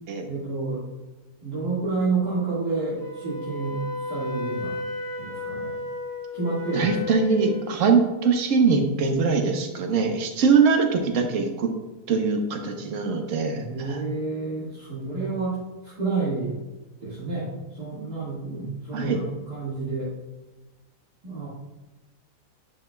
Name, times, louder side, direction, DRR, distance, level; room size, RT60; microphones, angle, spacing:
voice 1, 0.2-0.8 1.4-4.8 5.2-5.8 6.3-7.1 13.6-15.6 15.8-16.6 17.0-20.1 21.2-21.5, right 3 dB, 75° right, -10 dB, 2.5 m, -29 dB
Wind instrument woodwind instrument, 3.0-7.7, left 3 dB, 80° left, 1.6 m, -33 dB
voice 2, 6.7-11.7 12.1-14.0 18.9-19.3, right 5 dB, 55° right, 4 dB, 1.2 m, -22 dB
10.5 x 5.4 x 2.3 m, 1.1 s
omnidirectional pair, 1.7 m